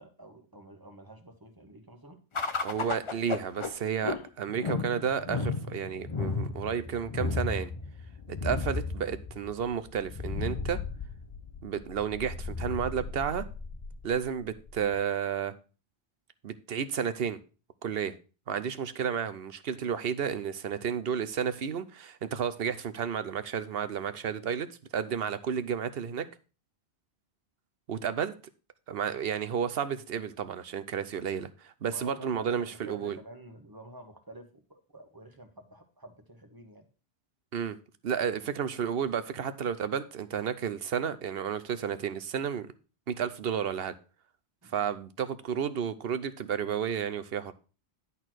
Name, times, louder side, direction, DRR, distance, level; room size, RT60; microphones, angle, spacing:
voice 1, 0.0-2.2 31.9-36.9 44.6-44.7, right 1 dB, 20° right, 1.3 m, -49 dB
sound 1, 2.3-15.0, left 4 dB, 35° left, 0.5 m, -35 dB
voice 2, 2.6-7.7 8.3-10.8 11.6-13.4 14.0-15.5 16.4-17.4 17.8-18.2 18.5-24.7 24.9-26.3 27.9-28.3 28.9-33.2 37.5-37.8 38.0-42.7 43.1-43.9 44.7-47.5, right 7 dB, 65° right, 0.9 m, -32 dB
11.0 x 4.2 x 6.2 m
omnidirectional pair, 1.1 m